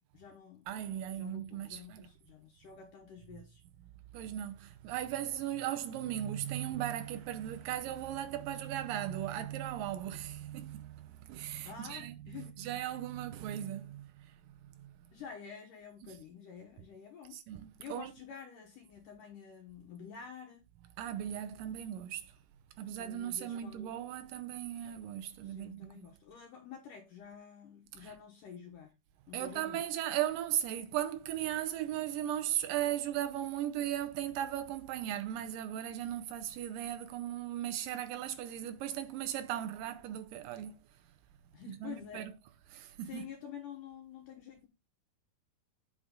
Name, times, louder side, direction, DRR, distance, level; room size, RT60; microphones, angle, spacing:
voice 1, 0.0-0.7 1.2-3.6 11.6-12.7 15.1-17.4 17.8-20.6 23.0-23.9 25.4-28.9 29.3-29.8 41.5-42.3 43.0-44.7, left 7 dB, 65° left, 2.5 m, -49 dB
voice 2, 0.7-2.1 4.1-12.1 12.6-14.0 16.0-16.1 17.3-18.1 21.0-22.3 22.8-26.1 28.0-28.1 29.3-40.8 41.7-42.3 42.7-43.3, right 11 dB, 90° right, 2.0 m, -37 dB
8.6 x 5.1 x 3.7 m
omnidirectional pair, 4.7 m